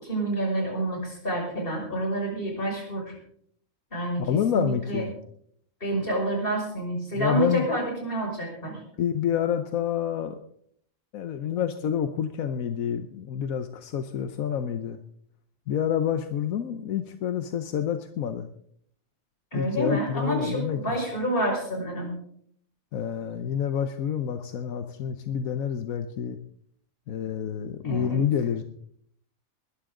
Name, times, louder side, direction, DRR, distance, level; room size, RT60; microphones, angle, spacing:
voice 1, 0.0-3.1 3.9-4.2 4.5-5.0 5.8-8.8 19.5-22.1 27.8-28.2, right 1 dB, 40° left, 0 dB, 6.0 m, -28 dB
voice 2, 4.2-5.1 7.1-7.7 9.0-10.4 11.1-15.0 15.7-18.5 19.5-21.0 22.9-26.4 27.1-28.6, left 9 dB, 85° left, 9 dB, 1.3 m, -28 dB
20.5 x 13.0 x 3.8 m, 0.66 s
omnidirectional pair, 1.4 m